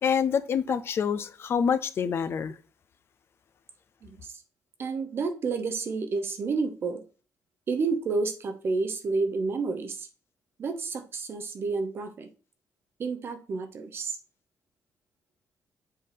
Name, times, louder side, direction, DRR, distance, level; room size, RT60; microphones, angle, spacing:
voice 1, 0.0-2.5, left 7 dB, 50° left, 0.5 m, -26 dB
voice 2, 4.0-4.4 4.8-7.0 7.7-10.1 10.6-12.3 13.0-14.2, right 4 dB, 45° right, 1.0 m, -30 dB
7.6 x 4.1 x 3.5 m
cardioid pair, 130°, 5 cm